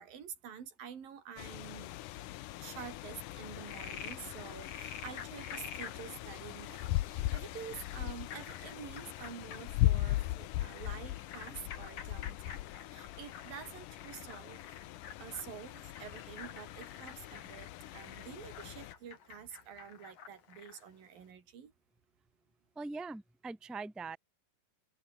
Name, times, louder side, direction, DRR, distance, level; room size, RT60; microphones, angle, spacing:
voice 1, 0.0-1.9 2.6-14.7 15.2-21.7, right 8 dB, 70° right, 5.1 m, -48 dB
sound 1, 1.4-18.9, left 16 dB, 70° left, 2.1 m, -39 dB
Frog, 3.4-20.9, left 7 dB, 55° left, 4.0 m, -50 dB
voice 2, 22.7-24.2, right 3 dB, ahead, 0.9 m, -42 dB
omnidirectional pair, 4.2 m